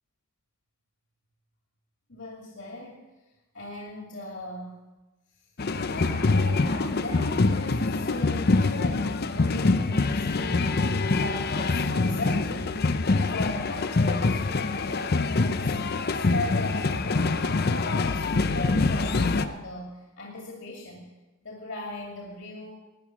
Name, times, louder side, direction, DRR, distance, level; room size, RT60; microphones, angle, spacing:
voice 1, 2.1-3.0 3.5-4.8 5.9-10.8 11.1-12.8 13.1-15.8 16.1-21.1 21.4-22.8, left 1 dB, 65° left, -1 dB, 2.6 m, -38 dB
sound 1, 5.6-19.5, left 3 dB, 50° left, 0.6 m, -25 dB
17.5 x 10.5 x 6.0 m, 1.1 s
head